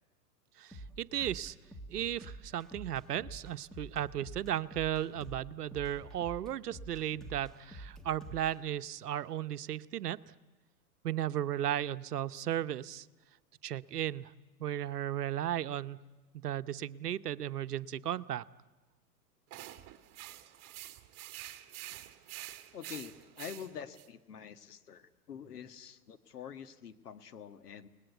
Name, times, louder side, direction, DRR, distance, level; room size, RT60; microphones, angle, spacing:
voice 1, 0.6-1.5 1.9-10.2 11.0-13.1 13.6-14.3 14.6-16.0 16.4-18.4, right 11 dB, 80° right, 14 dB, 0.9 m, -35 dB
sound 1, 0.7-8.6, right 1 dB, ahead, 1.6 m, -48 dB
sound 2, 19.5-24.1, right 14 dB, 35° right, 1.9 m, -47 dB
voice 2, 22.7-27.9, left 8 dB, 80° left, 10 dB, 1.7 m, -46 dB
30.0 x 19.5 x 8.3 m, 1.2 s
hypercardioid pair, 115°, 46 cm